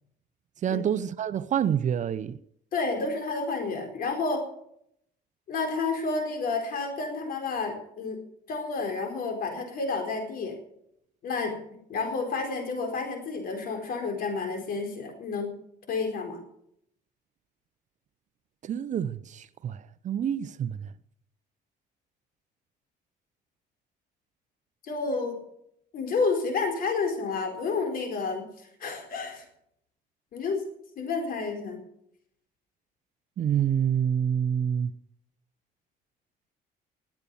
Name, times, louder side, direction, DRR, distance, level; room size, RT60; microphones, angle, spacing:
voice 1, 0.6-2.4 18.6-20.9 33.4-34.9, right 8 dB, 45° right, 0.7 m, -27 dB
voice 2, 2.7-4.4 5.5-8.2 8.5-10.5 11.2-11.6 11.9-15.5 15.9-16.4 24.8-25.4 25.9-29.4 30.3-30.6 31.0-31.8, left 4 dB, 60° left, 4.5 m, -30 dB
19.5 x 8.5 x 7.0 m
cardioid pair, 110°, 17 cm